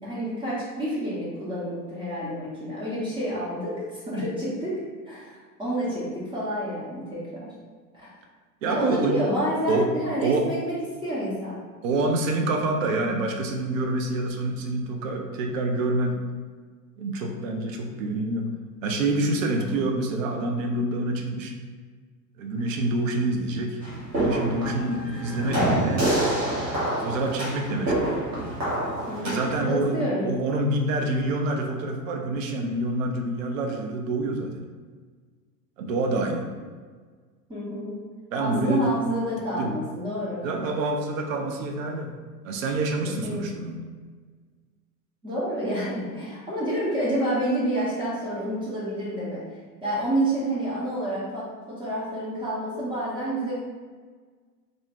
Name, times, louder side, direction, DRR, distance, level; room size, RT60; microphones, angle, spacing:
voice 1, 0.0-4.8 5.1-7.5 7.9-8.2 8.6-11.6 19.5-19.8 29.1-30.3 37.5-38.0 38.4-40.4 43.0-43.6 45.2-49.4 49.8-53.5, right 1 dB, 10° right, -9 dB, 0.7 m, -29 dB
voice 2, 8.6-9.2 9.7-9.9 10.2-10.5 11.8-16.2 17.0-18.5 18.8-21.5 22.4-23.8 24.1-26.0 26.9-28.1 29.2-34.7 35.8-36.5 38.3-38.9 39.6-39.7 40.4-42.2 42.4-43.8, right 2 dB, 55° right, 2 dB, 0.5 m, -27 dB
sound 1, 23.8-29.7, right 1 dB, 85° right, 1.2 m, -27 dB
2.5 x 2.2 x 3.4 m, 1.5 s
figure-of-eight pair, 85°, 50 cm